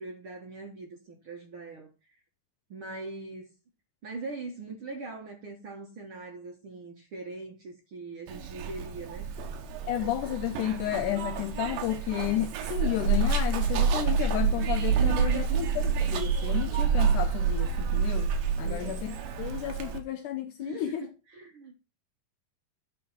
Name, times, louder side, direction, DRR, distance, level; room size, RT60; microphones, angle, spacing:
voice 1, 0.0-1.9 2.7-3.5 4.0-9.3 14.9-15.6 18.6-19.0 20.6-21.7, right 3 dB, 60° right, 1.4 m, -41 dB
Zipper (clothing), 8.3-20.0, right 6 dB, 85° right, 3.1 m, -28 dB
voice 2, 9.9-18.3 18.6-21.1, left 12 dB, 80° left, 1.8 m, -32 dB
9.5 x 5.1 x 5.5 m
omnidirectional pair, 4.2 m